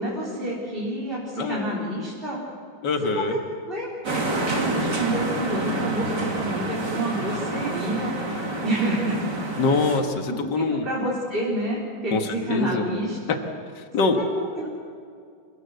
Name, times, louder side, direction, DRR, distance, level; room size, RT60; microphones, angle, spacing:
voice 1, 0.0-2.4 3.1-3.4 3.7-8.4 8.6-9.2 10.3-13.2 14.2-14.7, right 1 dB, 30° right, -6 dB, 4.6 m, -29 dB
voice 2, 1.4-1.8 2.8-3.4 5.6-6.5 9.6-10.9 12.1-12.8 13.3-13.4 13.8-14.2, left 4 dB, 65° left, 5 dB, 2.2 m, -25 dB
sound 1, 4.0-10.0, right 2 dB, 65° right, 3.6 m, -28 dB
28.0 x 16.5 x 8.0 m, 2.3 s
omnidirectional pair, 2.0 m